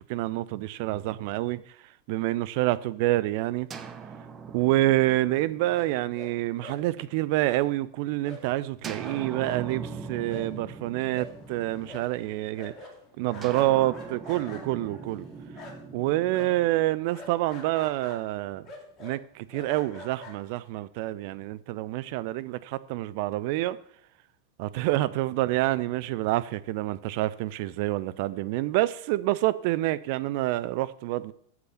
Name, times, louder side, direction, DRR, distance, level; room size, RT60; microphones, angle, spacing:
voice 1, 0.1-1.6 2.1-3.7 4.5-12.7 13.2-15.3 15.9-18.6 19.0-23.8 24.6-31.3, right 16 dB, 45° right, 0.5 m, -27 dB
sound 1, 3.7-7.5 8.8-12.4 13.4-17.5, right 5 dB, 20° right, 0.9 m, -42 dB
sound 2, 5.7-6.3 6.6-6.8 7.5-7.6 8.2-8.5 8.7-8.8 9.0-16.0 16.3-20.8, left 3 dB, 25° left, 2.1 m, -46 dB
8.4 x 7.8 x 5.7 m
figure-of-eight pair, 90°, 0 cm